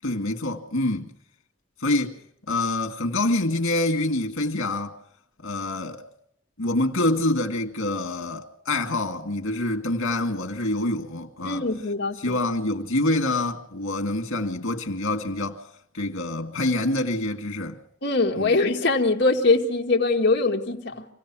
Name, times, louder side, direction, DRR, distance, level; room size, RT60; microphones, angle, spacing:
voice 1, 0.0-1.1 1.8-2.2 2.5-4.9 5.4-6.1 6.6-11.7 12.2-15.6 15.9-17.8 18.4-18.5, left 2 dB, 85° left, 2.0 m, -26 dB
voice 2, 11.4-12.4 18.0-21.1, left 3 dB, 55° left, 1.8 m, -22 dB
27.0 x 17.0 x 6.1 m
head